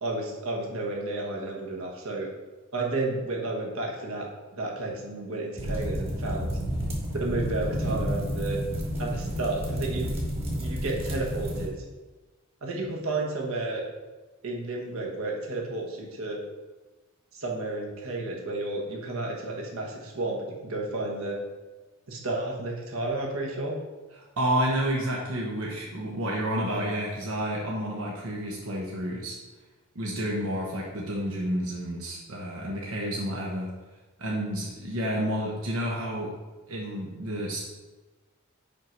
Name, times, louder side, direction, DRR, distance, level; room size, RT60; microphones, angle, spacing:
voice 1, 0.0-2.3 2.7-4.2 4.5-6.6 7.2-8.6 9.0-10.1 10.6-11.7 12.6-13.8 14.4-16.4 17.3-21.4 22.1-23.8, right 2 dB, 70° right, -1 dB, 1.3 m, -32 dB
sound 1, 5.6-11.7, equal, 30° right, 1.5 m, -30 dB
voice 2, 24.4-29.4 29.9-33.7 34.2-36.3 36.7-37.6, right 1 dB, 90° right, -3 dB, 1.1 m, -30 dB
5.7 x 4.6 x 5.2 m, 1.2 s
head